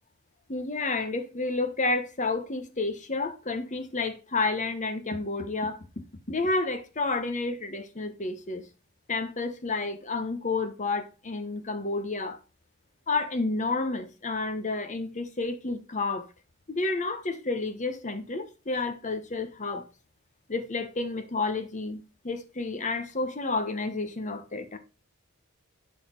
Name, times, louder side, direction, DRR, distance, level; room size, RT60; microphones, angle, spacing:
voice 1, 0.5-8.7 9.1-12.4 13.1-16.3 16.7-19.9 20.5-24.8, left 3 dB, 35° left, 1.1 m, -30 dB
11.5 x 4.2 x 5.2 m
head